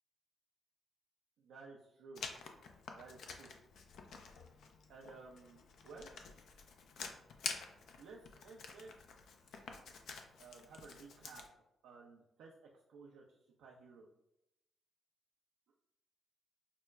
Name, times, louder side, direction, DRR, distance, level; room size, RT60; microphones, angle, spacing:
voice 1, 1.4-2.2 3.0-3.5 4.9-6.1 8.0-9.2 9.9-10.1 10.4-11.4 11.8-14.1, right 4 dB, 75° right, -2 dB, 0.4 m, -55 dB
Writing, 2.2-11.5, left 5 dB, 70° left, 0.4 m, -49 dB
5.7 x 2.1 x 2.3 m, 0.86 s
supercardioid pair, 50°, 0 cm